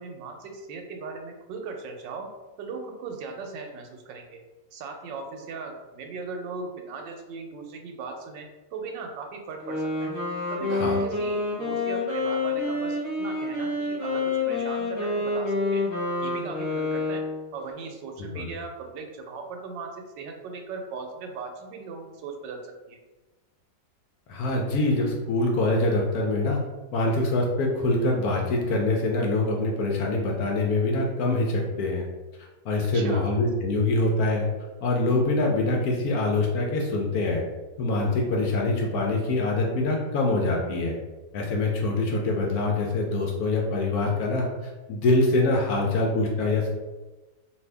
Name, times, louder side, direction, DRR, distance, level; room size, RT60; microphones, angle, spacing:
voice 1, 0.0-2.3 2.6-4.4 4.7-10.1 10.5-15.8 16.2-17.2 17.5-23.0 32.9-33.2, right 4 dB, 90° right, 3 dB, 1.2 m, -38 dB
Wind instrument woodwind instrument, 9.5-17.5, left 3 dB, 25° left, 0.8 m, -28 dB
voice 2, 24.3-26.6 26.9-32.0 32.6-34.5 34.8-37.4 37.8-40.9 41.3-46.7, left 2 dB, 70° left, -1 dB, 0.9 m, -24 dB
2.7 x 2.6 x 3.3 m, 1.2 s
omnidirectional pair, 1.9 m